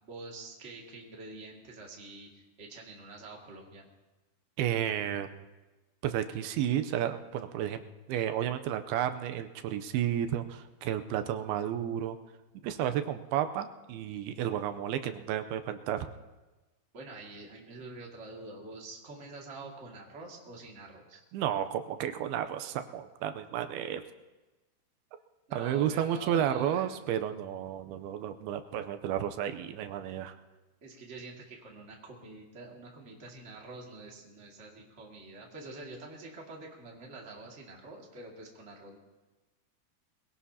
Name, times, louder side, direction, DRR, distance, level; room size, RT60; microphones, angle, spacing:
voice 1, 0.0-3.9 16.9-21.2 25.5-27.0 30.8-39.0, right 3 dB, 25° right, -1 dB, 1.5 m, -46 dB
voice 2, 4.6-5.4 6.0-7.8 8.1-12.2 12.6-16.1 21.3-24.0 25.5-30.3, right 10 dB, 80° right, 8 dB, 2.5 m, -32 dB
23.0 x 17.0 x 2.8 m, 1.1 s
omnidirectional pair, 4.7 m